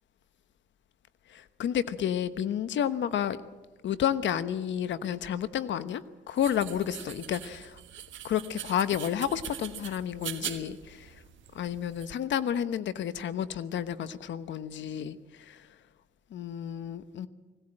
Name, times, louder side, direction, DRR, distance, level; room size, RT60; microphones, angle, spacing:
voice 1, 1.3-3.4 3.8-6.0 6.3-7.8 8.2-11.1 11.5-15.2 15.5-15.6 16.3-17.3, left 9 dB, 70° left, 13 dB, 1.1 m, -31 dB
sound 1, 6.4-12.1, right 11 dB, 75° right, 1.5 m, -42 dB
20.5 x 17.0 x 8.8 m, 1.2 s
cardioid pair, 90°, 20 cm